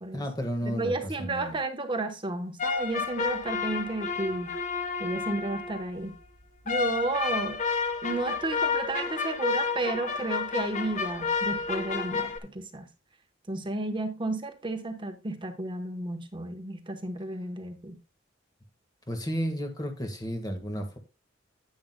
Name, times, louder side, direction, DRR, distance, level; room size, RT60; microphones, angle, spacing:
voice 1, 0.1-1.6 19.1-21.0, equal, 20° left, 1.6 m, -32 dB
voice 2, 0.7-4.5 5.0-6.1 6.6-7.6 8.0-12.9 13.5-18.0, right 2 dB, 25° right, 1.1 m, -32 dB
sound 1, 2.6-5.9 6.7-12.4, left 5 dB, 40° left, 1.0 m, -31 dB
10.0 x 9.5 x 2.2 m
head